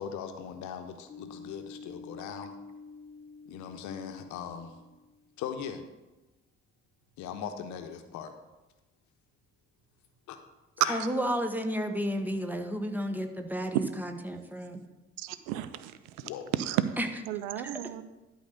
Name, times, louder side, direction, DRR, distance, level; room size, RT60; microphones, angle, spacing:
voice 1, 0.0-2.5 3.5-4.7 5.4-5.8 7.2-8.3 10.3-10.4 10.8-11.0 16.2-16.5, left 8 dB, 55° left, 7 dB, 1.0 m, -39 dB
sound 1, 1.1-5.3, left 4 dB, 30° left, 1.0 m, -48 dB
voice 2, 10.9-14.8 17.0-17.1, equal, 5° right, 5 dB, 1.1 m, -32 dB
voice 3, 15.2-16.8 17.3-18.0, right 13 dB, 65° right, 13 dB, 0.6 m, -32 dB
11.5 x 4.0 x 6.6 m, 1.1 s
figure-of-eight pair, 50°, 34 cm